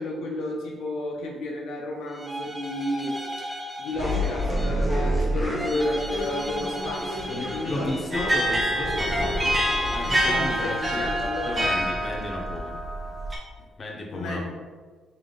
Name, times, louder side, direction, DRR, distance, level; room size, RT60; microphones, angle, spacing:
voice 1, 0.0-7.9 10.1-11.7 14.1-14.5, left 1 dB, 80° left, -1 dB, 0.6 m, -32 dB
sound 1, 2.1-4.9 5.5-8.3 8.8-11.8, equal, 10° right, 0.6 m, -36 dB
sound 2, 3.9-12.6, equal, 15° left, 0.9 m, -30 dB
voice 2, 7.3-9.6 9.9-11.1 11.4-12.8 13.8-14.5, left 2 dB, 35° left, -1 dB, 0.8 m, -33 dB
sound 3, 8.1-13.4, right 1 dB, 30° right, 0.9 m, -26 dB
3.8 x 2.8 x 3.7 m, 1.5 s
cardioid pair, 90°, 0 cm